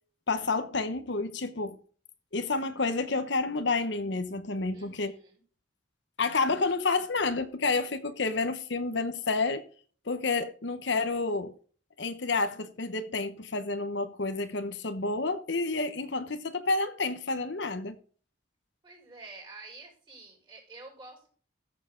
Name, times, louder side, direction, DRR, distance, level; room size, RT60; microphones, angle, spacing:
voice 1, 0.3-1.8 2.3-5.1 6.2-9.7 10.1-11.5 12.0-18.0, left 3 dB, 65° left, 1.0 m, -29 dB
voice 2, 4.7-5.4 18.8-21.3, right 3 dB, 25° right, 5.0 m, -49 dB
14.0 x 7.3 x 3.8 m
head